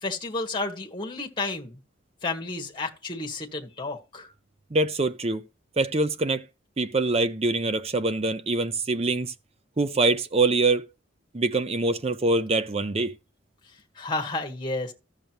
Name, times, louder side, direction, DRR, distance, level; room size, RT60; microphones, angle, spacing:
voice 1, 0.0-1.7 2.2-4.3 14.0-14.9, left 3 dB, 25° left, 1.6 m, -31 dB
voice 2, 4.7-5.4 5.8-6.4 6.8-9.3 9.8-10.8 11.3-13.1, right 2 dB, 30° right, 0.5 m, -24 dB
14.0 x 6.6 x 3.0 m
head